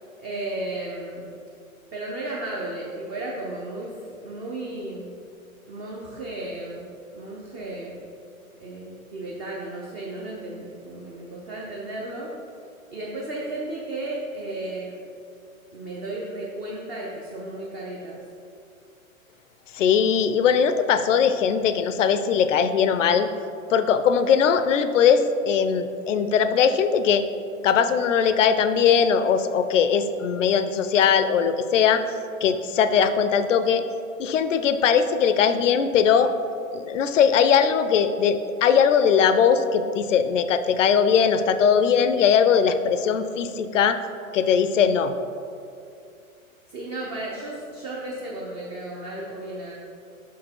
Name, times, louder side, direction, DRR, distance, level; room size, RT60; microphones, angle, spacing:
voice 1, 0.2-1.3 1.9-4.0 4.2-5.1 5.7-8.1 8.6-12.3 12.9-15.0 15.7-18.2 46.7-49.7, right 2 dB, 20° right, -3 dB, 0.5 m, -34 dB
voice 2, 19.7-23.3 23.7-27.3 27.6-32.0 32.4-33.8 34.2-36.3 36.7-44.0 44.3-45.1, left 7 dB, 60° left, 10 dB, 0.5 m, -20 dB
5.7 x 4.6 x 4.3 m, 2.5 s
figure-of-eight pair, 100°, 42 cm